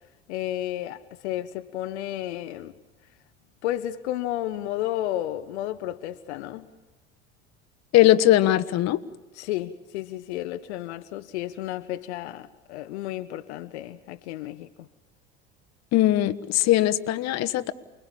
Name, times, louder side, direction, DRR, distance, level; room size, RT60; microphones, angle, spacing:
voice 1, 0.3-2.7 3.6-6.7 9.3-14.9, left 13 dB, 75° left, 1.0 m, -32 dB
voice 2, 7.9-9.0 15.9-17.7, left 14 dB, 50° left, 1.2 m, -20 dB
29.0 x 22.0 x 7.2 m
hypercardioid pair, 75°, 34 cm